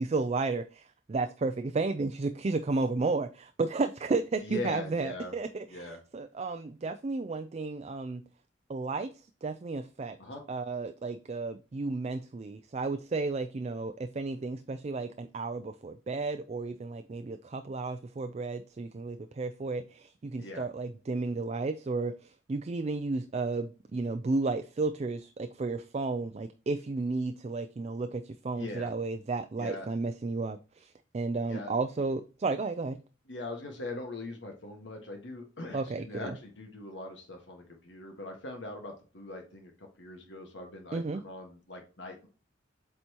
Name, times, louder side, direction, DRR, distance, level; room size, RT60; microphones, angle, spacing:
voice 1, 0.0-8.2 8.7-10.2 10.5-33.0 35.7-36.4 40.9-41.2, right 3 dB, 35° right, 10 dB, 0.4 m, -33 dB
voice 2, 4.4-5.3 5.7-6.0 10.2-10.4 20.4-20.7 28.6-28.9 29.6-29.9 31.5-31.7 33.3-42.3, left 2 dB, 75° left, 2 dB, 1.5 m, -41 dB
7.9 x 4.3 x 2.9 m, 0.34 s
head